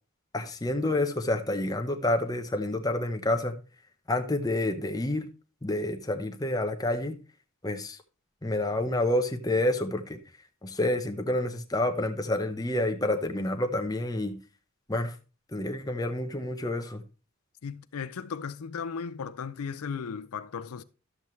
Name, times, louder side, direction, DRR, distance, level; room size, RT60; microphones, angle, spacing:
voice 1, 0.3-3.5 4.1-5.3 5.6-7.2 7.6-8.0 8.4-10.2 10.6-14.4 14.9-15.2 15.5-17.0, left 1 dB, 15° left, 0.7 m, -28 dB
voice 2, 17.6-20.8, left 6 dB, 75° left, 0.5 m, -36 dB
12.0 x 7.2 x 3.1 m
head